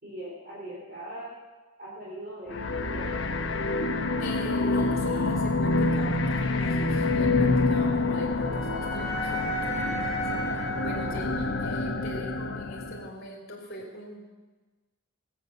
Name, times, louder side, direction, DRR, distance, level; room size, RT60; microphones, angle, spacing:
voice 1, 0.0-1.4 1.8-3.3, right 1 dB, 45° right, -5 dB, 2.7 m, -41 dB
sound 1, 2.5-13.1, left 3 dB, 60° left, 0.9 m, -27 dB
voice 2, 4.2-14.2, left 1 dB, 45° left, -2 dB, 2.9 m, -41 dB
Wind instrument woodwind instrument, 7.7-11.9, right 1 dB, 15° left, 2.2 m, -35 dB
17.5 x 8.1 x 6.9 m, 1.2 s
head